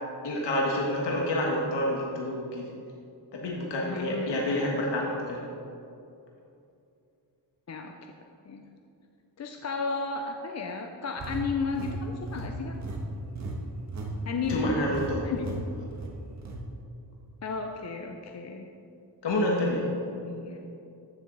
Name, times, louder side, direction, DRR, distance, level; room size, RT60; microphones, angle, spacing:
voice 1, 0.2-2.6 3.3-5.5 14.5-15.3 19.2-19.9, left 1 dB, 75° left, -2 dB, 1.5 m, -28 dB
voice 2, 3.9-4.4 7.7-8.1 8.4-8.6 9.4-12.8 14.2-15.6 17.4-18.7 20.1-20.6, left 4 dB, 40° left, 4 dB, 0.5 m, -34 dB
sound 1, 11.2-14.1 14.4-14.6 14.9-15.1 15.4-15.6 15.9-16.6, right 3 dB, 40° right, 1.3 m, -36 dB
14.5 x 7.1 x 3.9 m, 2.6 s
wide cardioid pair, 175°, 43 cm